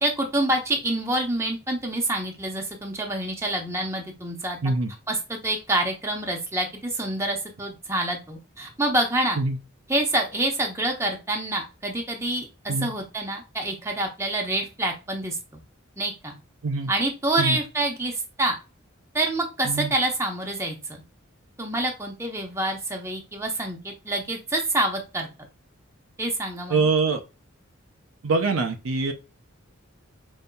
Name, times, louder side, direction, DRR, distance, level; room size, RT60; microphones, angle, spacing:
voice 1, 0.0-4.6 5.1-9.4 9.9-15.4 16.0-16.3 16.9-18.6 19.1-21.0 21.6-25.3 26.2-26.9, right 1 dB, 15° right, 0.8 m, -27 dB
voice 2, 26.7-27.2 28.2-29.1, right 3 dB, 75° right, 0.6 m, -24 dB
5.3 x 2.7 x 2.2 m
head